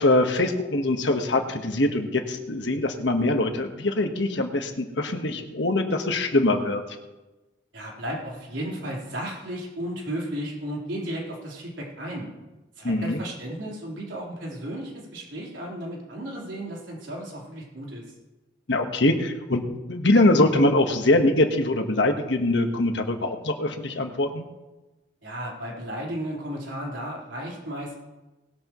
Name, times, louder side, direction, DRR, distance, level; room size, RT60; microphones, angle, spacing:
voice 1, 0.0-6.8 12.8-13.2 18.7-24.4, left 2 dB, 70° left, 5 dB, 1.4 m, -23 dB
voice 2, 7.7-12.3 12.8-18.0 25.2-28.0, right 1 dB, 90° right, -3 dB, 4.0 m, -34 dB
19.5 x 12.5 x 3.1 m, 1.1 s
head